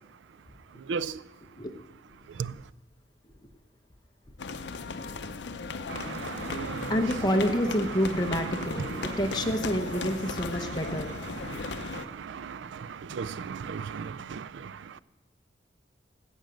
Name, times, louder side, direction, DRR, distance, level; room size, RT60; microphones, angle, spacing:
voice 1, 0.9-1.2 2.4-2.5 5.9-7.1 8.8-9.2 10.2-10.3 10.6-10.7 11.4-15.0, right 6 dB, 90° right, 0.4 m, -36 dB
sound 1, 4.4-12.0, left 4 dB, 80° left, 0.6 m, -36 dB
voice 2, 6.9-11.5 11.8-12.0, equal, 25° left, 0.9 m, -29 dB
15.0 x 5.1 x 7.8 m
head